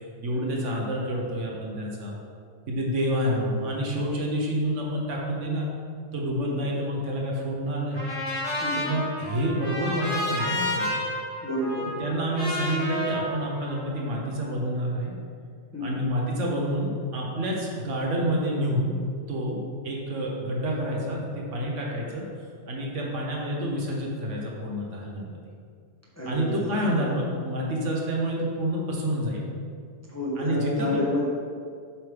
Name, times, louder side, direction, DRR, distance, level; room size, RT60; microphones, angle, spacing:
voice 1, 0.2-2.1 2.7-5.7 6.1-8.0 8.8-10.9 12.0-15.1 15.8-19.6 19.8-22.3 22.7-25.3 26.2-29.5 30.4-31.1, equal, 75° right, -2 dB, 1.4 m, -28 dB
Trumpet, 7.9-14.2, left 1 dB, 65° left, 2.2 m, -31 dB
voice 2, 8.6-8.9 11.4-11.9 15.7-16.1 26.2-27.1 30.1-31.2, left 1 dB, 15° left, -5 dB, 1.0 m, -30 dB
7.4 x 5.1 x 3.4 m, 2.2 s
omnidirectional pair, 1.3 m